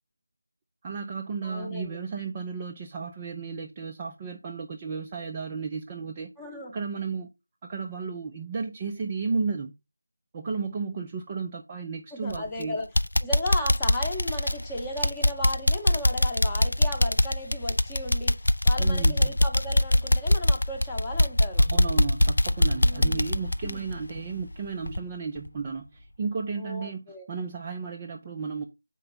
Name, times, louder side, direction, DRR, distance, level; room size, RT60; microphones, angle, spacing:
voice 1, 0.8-6.3 6.7-7.3 7.6-9.7 10.3-12.8 18.8-19.3 21.6-28.6, right 5 dB, 15° right, 0.4 m, -33 dB
voice 2, 1.4-2.0 6.4-6.7 12.1-12.9 13.2-18.4 18.6-21.6 22.8-23.2 23.6-23.8 26.6-27.3, left 1 dB, 10° left, 0.9 m, -35 dB
sound 1, 12.3-12.6 13.0-24.5 24.9-25.0 25.5-25.6, left 1 dB, 60° left, 0.4 m, -23 dB
6.6 x 4.5 x 4.0 m
figure-of-eight pair, 170°, 0 cm